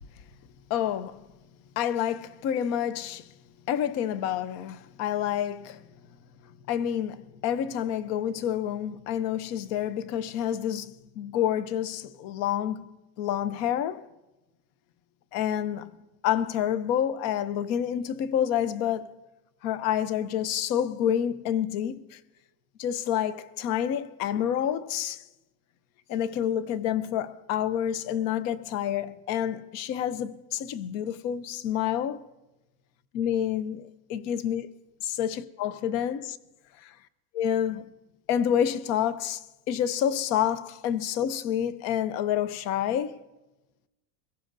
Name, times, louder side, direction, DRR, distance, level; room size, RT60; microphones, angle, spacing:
voice 1, 0.7-1.2 1.8-3.3 3.7-5.9 6.7-12.9 13.2-14.1 15.3-16.0 16.2-19.1 19.6-22.2 22.8-25.2 26.1-32.2 33.1-33.8 34.1-34.7 35.0-36.4 37.3-37.9 38.3-43.2, left 10 dB, 35° left, 0.6 m, -28 dB
23.5 x 15.5 x 2.6 m
supercardioid pair, 170°, 45 cm